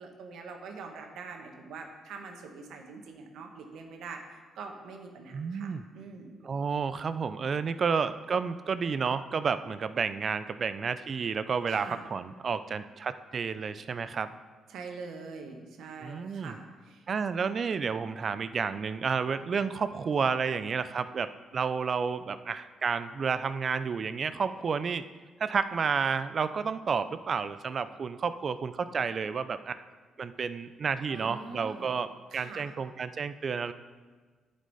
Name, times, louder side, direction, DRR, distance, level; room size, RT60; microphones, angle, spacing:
voice 1, 0.0-6.4 11.7-12.0 14.7-17.1 31.1-31.9 32.3-32.7, right 4 dB, 80° right, 3 dB, 1.2 m, -44 dB
voice 2, 5.3-5.8 6.4-14.3 16.0-16.6 17.1-25.0 25.4-29.8 30.2-33.7, right 5 dB, 45° right, 12 dB, 0.4 m, -31 dB
11.0 x 5.2 x 4.1 m, 1.4 s
cardioid pair, 90°, 0 cm